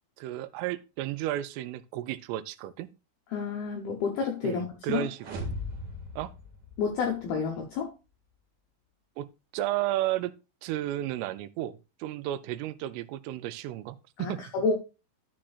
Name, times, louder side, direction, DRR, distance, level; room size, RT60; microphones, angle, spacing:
voice 1, 0.2-2.9 4.4-5.4 6.2-6.3 9.2-9.3 9.5-10.4 10.6-14.4, right 14 dB, 85° right, 3.1 m, -33 dB
voice 2, 3.3-5.1 6.8-7.9 14.2-14.8, left 5 dB, 80° left, 2.2 m, -30 dB
sound 1, 5.2-7.3, left 1 dB, 50° right, 2.4 m, -38 dB
12.0 x 7.4 x 2.4 m
omnidirectional pair, 5.8 m